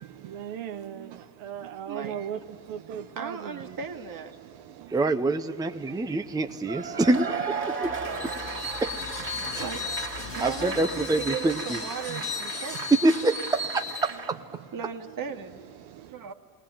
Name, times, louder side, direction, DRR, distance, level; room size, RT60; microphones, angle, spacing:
voice 1, 0.0-3.8 4.4-5.0 5.4-7.1 7.6-8.8 9.3-9.6 10.2-10.4 12.1-12.9 14.1-14.2 14.5-14.7 15.8-16.3, right 9 dB, 80° right, 1.0 m, -41 dB
voice 2, 1.9-2.3 3.2-4.3 9.6-9.8 10.3-12.8 14.7-15.6 16.1-16.3, right 6 dB, 45° right, 2.1 m, -37 dB
voice 3, 4.9-7.9 8.8-8.9 9.5-9.6 10.4-11.8 13.0-13.4 13.7-14.4, right 2 dB, 10° right, 0.7 m, -26 dB
Cheering / Applause / Crowd, 6.7-14.3, right 5 dB, 25° right, 2.3 m, -36 dB
sound 1, 7.8-12.1, left 8 dB, 75° left, 1.2 m, -44 dB
Screech, 8.1-14.2, left 3 dB, 15° left, 2.0 m, -36 dB
20.0 x 19.5 x 9.0 m
supercardioid pair, 105°, 45 cm